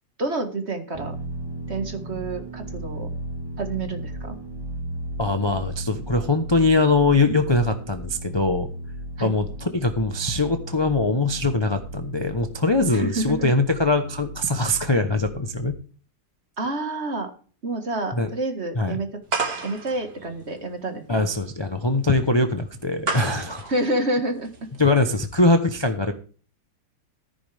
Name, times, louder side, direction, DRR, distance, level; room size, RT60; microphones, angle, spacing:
voice 1, 0.2-1.2 1.7-3.1 3.6-4.4 9.2-9.3 12.9-13.5 16.6-17.3 17.6-19.2 19.6-21.2 23.7-24.7, right 2 dB, 35° right, 6 dB, 2.0 m, -28 dB
sound 1, 0.9-15.7, right 1 dB, 15° right, 2.2 m, -35 dB
voice 2, 5.2-8.7 9.2-15.8 18.1-18.3 18.7-19.0 21.1-23.7 24.8-26.1, left 2 dB, 20° left, 6 dB, 0.7 m, -22 dB
sound 2, 19.3-24.9, right 4 dB, 55° right, 2.6 m, -32 dB
14.5 x 9.6 x 3.5 m, 0.40 s
omnidirectional pair, 1.9 m